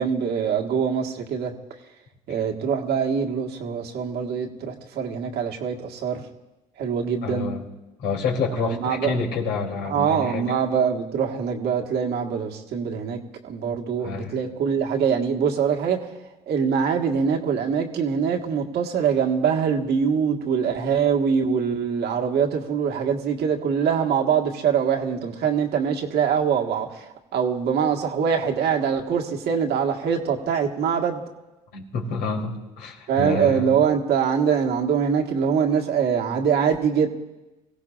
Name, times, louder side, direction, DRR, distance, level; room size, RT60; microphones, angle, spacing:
voice 1, 0.0-1.5 2.3-6.2 6.8-7.5 8.6-9.2 9.9-16.1 16.5-31.2 33.1-37.1, right 7 dB, 60° right, 2 dB, 1.6 m, -23 dB
voice 2, 7.2-7.6 8.0-10.5 14.0-14.4 31.7-33.7, left 4 dB, 70° left, 0 dB, 3.1 m, -28 dB
24.0 x 16.5 x 2.5 m, 1.0 s
hypercardioid pair, 65°, 19 cm